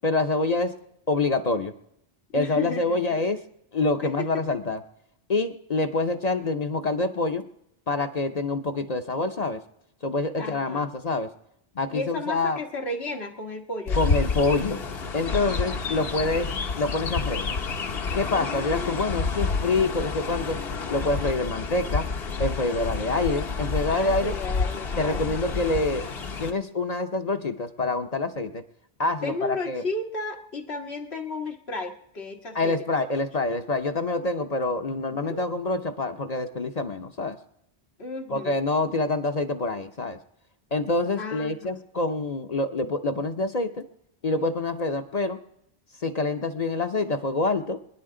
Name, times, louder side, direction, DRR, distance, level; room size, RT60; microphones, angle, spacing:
voice 1, 0.0-0.7 1.1-1.7 2.3-3.4 3.7-4.8 5.3-7.4 7.9-9.6 10.0-11.3 11.8-12.6 13.9-14.8 15.1-16.5 16.8-17.5 18.1-20.6 20.9-22.1 22.4-24.3 25.0-26.0 26.4-28.6 29.0-29.8 32.5-37.4 38.3-40.2 40.7-43.8 44.2-45.4 46.0-47.8, left 3 dB, 45° left, 6 dB, 0.7 m, -26 dB
voice 2, 2.3-3.0 4.0-4.4 10.4-10.9 11.9-14.0 18.3-19.0 23.9-25.3 29.2-32.7 35.1-35.4 38.0-38.5 41.2-41.8, left 2 dB, 90° left, 2 dB, 1.7 m, -34 dB
Chirp tweet, 13.9-26.5, left 4 dB, 70° left, 1.2 m, -29 dB
24.5 x 10.5 x 3.8 m, 0.76 s
omnidirectional pair, 1.0 m